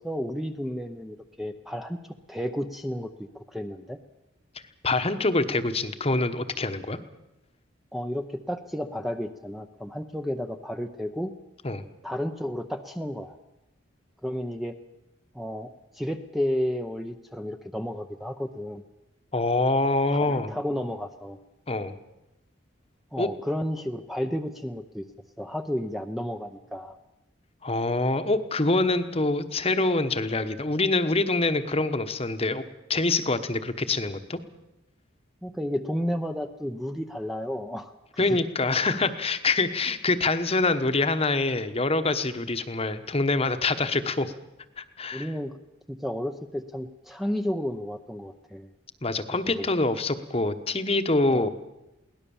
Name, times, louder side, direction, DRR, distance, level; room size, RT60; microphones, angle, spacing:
voice 1, 0.0-2.0 2.3-4.0 7.9-11.3 12.0-13.4 14.2-14.8 15.3-18.8 20.2-21.4 23.1-25.1 25.4-27.0 35.4-37.9 38.3-38.4 45.1-45.6 45.9-48.7 49.6-49.7 51.3-51.5, equal, ahead, 6 dB, 0.7 m, -32 dB
voice 2, 4.8-7.0 11.6-11.8 19.3-20.5 21.7-21.9 23.2-23.3 27.6-32.6 32.9-34.4 38.2-44.3 44.8-45.3 49.0-51.5, left 2 dB, 30° left, 10 dB, 1.1 m, -25 dB
22.5 x 18.0 x 7.1 m, 0.92 s
head